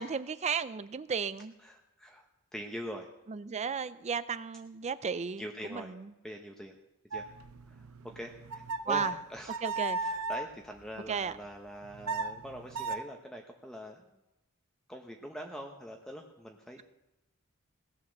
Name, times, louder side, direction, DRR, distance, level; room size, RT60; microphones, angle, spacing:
voice 1, 0.0-1.5 3.3-6.1 8.8-9.1 9.6-10.0 11.1-11.4, right 6 dB, 30° right, 15 dB, 0.5 m, -34 dB
voice 2, 1.6-2.3 2.5-3.1 5.4-5.9 6.2-6.8 7.1-7.3 7.7-9.5 10.0-14.0 14.9-16.8, equal, 5° left, 2 dB, 1.0 m, -43 dB
sound 1, 7.1-10.5 11.7-13.0, right 3 dB, 75° right, 0.8 m, -36 dB
18.0 x 8.4 x 6.6 m, 0.97 s
head